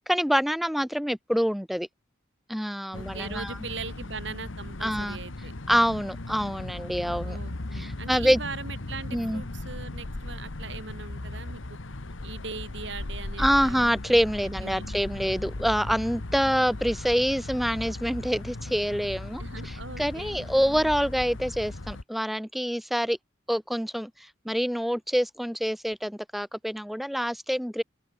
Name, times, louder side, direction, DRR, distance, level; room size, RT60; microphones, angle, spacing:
voice 1, 0.0-1.9 2.5-3.6 4.8-5.2 5.7-7.4 7.7-8.4 9.1-9.4 13.4-23.2 23.5-27.8, equal, ahead, 0.5 m, -26 dB
sound 1, 2.9-22.0, left 2 dB, 80° left, 1.4 m, -37 dB
voice 2, 2.9-5.5 7.2-11.8 12.2-14.9 19.4-20.9, right 4 dB, 65° right, 4.2 m, -40 dB
open air
head